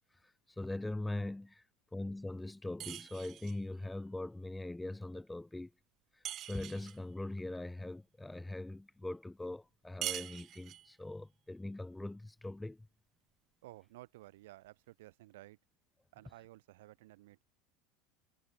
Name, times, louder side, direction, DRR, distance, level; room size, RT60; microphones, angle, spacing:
voice 1, 0.2-1.6 1.9-5.7 6.1-12.9, left 2 dB, 10° left, 0.7 m, -41 dB
sound 1, 2.8-3.6 6.2-7.0 10.0-10.9, right 12 dB, 45° right, 0.6 m, -42 dB
voice 2, 13.6-15.6 16.1-17.4, right 18 dB, 75° right, 6.6 m, -55 dB
hypercardioid pair, 95°, 0 cm